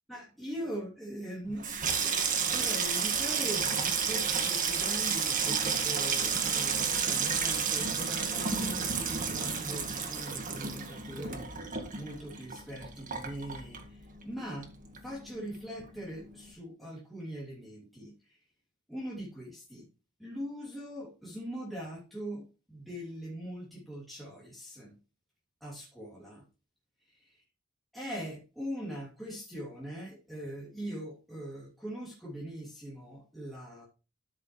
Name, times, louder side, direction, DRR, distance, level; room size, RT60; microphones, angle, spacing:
voice 1, 0.1-11.5 11.9-14.7 15.0-18.4 18.9-19.9 20.2-24.9 25.6-26.4 27.1-27.4 27.9-33.9, equal, ahead, -7 dB, 3.0 m, -41 dB
Water tap faucet / Sink (filling or washing), 1.5-14.3 14.6-15.3 15.5-15.9, right 6 dB, 40° right, 1.7 m, -31 dB
12.5 x 6.7 x 3.2 m, 0.32 s
head